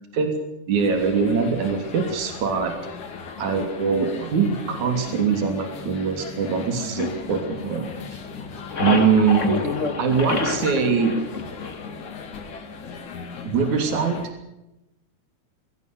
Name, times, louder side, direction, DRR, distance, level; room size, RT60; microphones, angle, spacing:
voice 1, 0.7-2.7 3.4-7.9 8.8-9.6 10.0-11.2 13.4-14.2, right 5 dB, 65° right, 5 dB, 4.4 m, -22 dB
sound 1, 0.8-14.3, left 5 dB, 65° left, 4.0 m, -37 dB
sound 2, 7.0-8.1 8.4-12.1, left 3 dB, 30° left, 1.6 m, -28 dB
22.5 x 19.0 x 6.8 m, 0.92 s
omnidirectional pair, 3.7 m